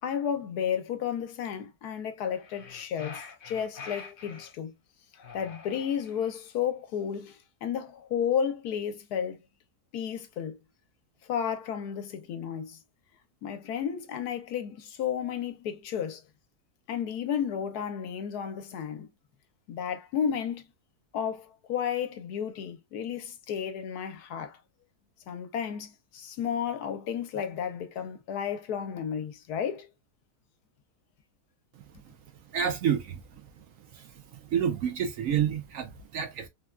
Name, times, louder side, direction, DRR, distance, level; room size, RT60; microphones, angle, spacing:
voice 1, 0.0-4.7 5.3-9.4 9.9-10.6 11.3-12.8 13.4-16.2 16.9-19.1 19.7-20.7 21.1-24.6 25.3-29.9, left 8 dB, 80° left, 1.2 m, -32 dB
sound 1, 2.4-4.5 5.2-6.4, left 5 dB, 50° left, 0.7 m, -45 dB
voice 2, 32.5-33.2 33.6-33.7 33.9-36.5, right 8 dB, 65° right, 0.9 m, -29 dB
3.5 x 2.2 x 2.3 m
omnidirectional pair, 1.7 m